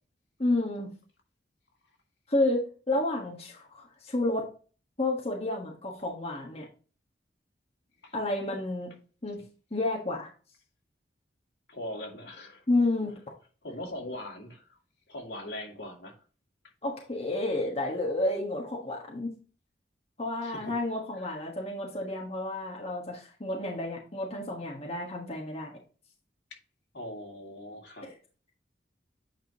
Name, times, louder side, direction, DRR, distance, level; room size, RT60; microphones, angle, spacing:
voice 1, 0.4-0.9 2.3-4.5 5.0-6.7 8.1-8.9 9.2-9.4 9.7-10.3 12.7-13.2 16.8-19.3 20.2-25.8 28.0-28.1, left 2 dB, 35° left, 1.4 m, -30 dB
voice 2, 11.7-12.6 13.6-14.8 15.1-16.2 20.4-20.8 21.2-21.4 26.9-28.1, left 1 dB, 75° left, 2.4 m, -41 dB
9.0 x 5.1 x 2.9 m
head